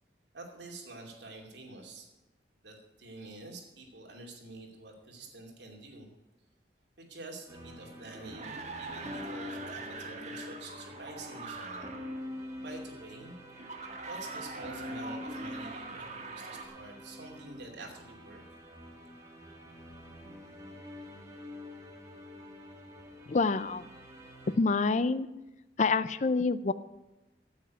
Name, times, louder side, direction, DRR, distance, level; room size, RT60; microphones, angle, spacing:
voice 1, 0.3-2.1 2.6-6.1 7.0-11.9 12.6-13.4 14.1-18.4, right 2 dB, 75° right, 1 dB, 2.6 m, -47 dB
sound 1, 7.5-24.6, left 1 dB, 15° right, 2.0 m, -46 dB
sound 2, 7.9-12.2 13.5-16.7, right 3 dB, 40° right, 1.5 m, -43 dB
voice 2, 23.3-23.9 24.5-25.3 25.8-26.7, left 4 dB, 40° left, 14 dB, 0.5 m, -27 dB
9.3 x 8.1 x 9.4 m, 1.0 s
head